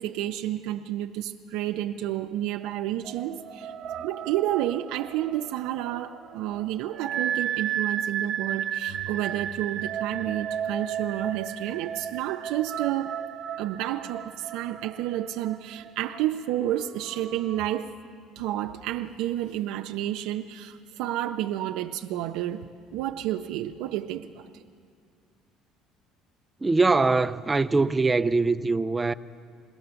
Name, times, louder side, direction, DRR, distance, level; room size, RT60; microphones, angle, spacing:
voice 1, 0.0-3.7 4.0-13.2 13.6-17.9 18.4-24.6, right 13 dB, 85° right, 0.6 m, -30 dB
sound 1, 3.0-17.8, right 9 dB, 60° right, 1.1 m, -34 dB
voice 2, 26.6-29.1, right 3 dB, 15° right, 0.5 m, -22 dB
22.0 x 17.0 x 6.9 m
cardioid pair, 125°, 0 cm